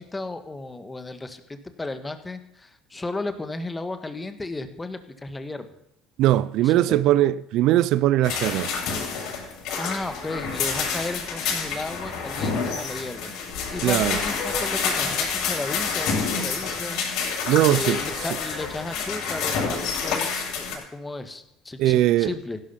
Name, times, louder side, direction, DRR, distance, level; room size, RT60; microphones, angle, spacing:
voice 1, 0.0-5.7 6.6-7.1 9.8-13.3 13.7-17.0 17.7-22.6, left 2 dB, 15° left, 1.5 m, -34 dB
voice 2, 6.2-8.7 13.8-14.2 17.5-18.0 21.8-22.3, right 14 dB, 65° right, 0.4 m, -20 dB
sound 1, 8.2-20.8, left 5 dB, 70° left, 7.6 m, -28 dB
16.0 x 12.0 x 5.8 m
cardioid pair, 115°, 0 cm